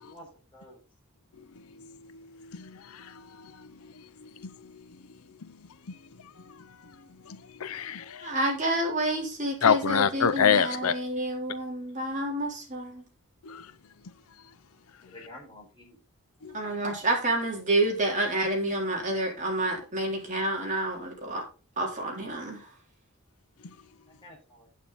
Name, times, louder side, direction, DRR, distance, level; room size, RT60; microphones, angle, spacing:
voice 1, 2.4-3.5 4.2-4.5 7.3-8.3 9.6-10.9 13.4-13.7 16.4-16.6, left 7 dB, 75° left, 0.6 m, -27 dB
voice 2, 8.2-13.0 16.5-21.4 21.8-22.6, right 1 dB, 35° right, 3.6 m, -29 dB
voice 3, 15.0-16.0 24.2-24.7, left 1 dB, 20° left, 5.6 m, -49 dB
9.1 x 8.9 x 4.0 m
head